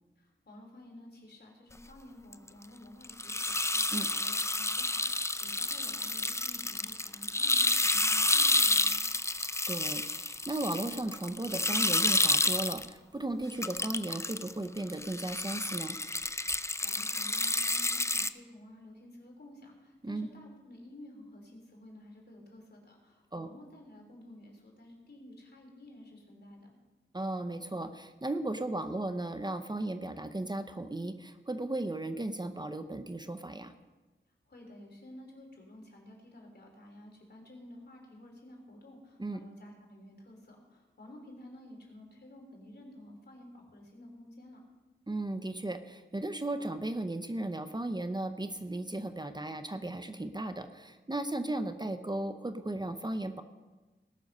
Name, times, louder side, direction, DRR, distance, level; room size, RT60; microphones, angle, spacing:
voice 1, 0.2-9.1 16.5-26.7 34.5-44.6, left 1 dB, 55° left, 0 dB, 3.5 m, -52 dB
sound 1, 2.3-2.5 3.0-12.9 13.5-14.5 14.8-18.3, left 2 dB, 15° left, 0.4 m, -30 dB
voice 2, 9.7-16.0 20.0-20.3 23.3-23.5 27.1-33.7 39.2-39.4 45.1-53.4, right 2 dB, 20° right, 9 dB, 0.7 m, -36 dB
19.0 x 6.4 x 5.4 m, 1.2 s
wide cardioid pair, 60°, 20 cm